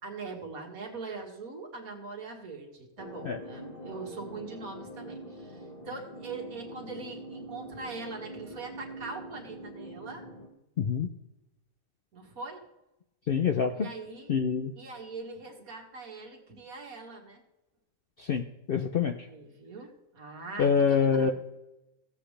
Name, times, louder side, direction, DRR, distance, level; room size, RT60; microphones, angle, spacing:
voice 1, 0.0-10.2 12.1-12.6 13.7-14.3 14.8-17.4 19.3-21.3, right 4 dB, 75° right, 1 dB, 2.2 m, -42 dB
sound 1, 3.0-10.5, equal, 30° left, 1.7 m, -44 dB
voice 2, 10.8-11.1 13.3-13.9 14.3-14.7 18.3-19.1 20.6-21.3, left 6 dB, 55° left, 5 dB, 0.6 m, -26 dB
16.0 x 7.9 x 3.3 m, 0.94 s
omnidirectional pair, 1.5 m